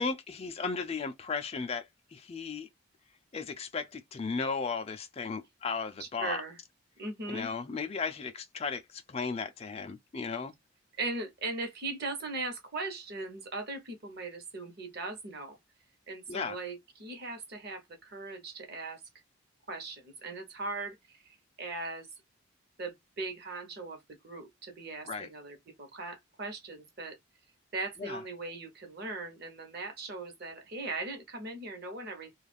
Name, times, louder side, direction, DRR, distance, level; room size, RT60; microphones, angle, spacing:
voice 1, 0.0-2.7 3.3-6.4 7.3-10.5 16.3-16.6 25.0-25.3 28.0-28.2, left 4 dB, 30° left, 0.3 m, -35 dB
voice 2, 6.0-6.6 7.0-7.5 11.0-15.6 16.1-19.0 19.7-22.1 22.8-27.2 27.7-32.3, right 3 dB, 50° right, 0.8 m, -39 dB
2.3 x 2.3 x 3.3 m
head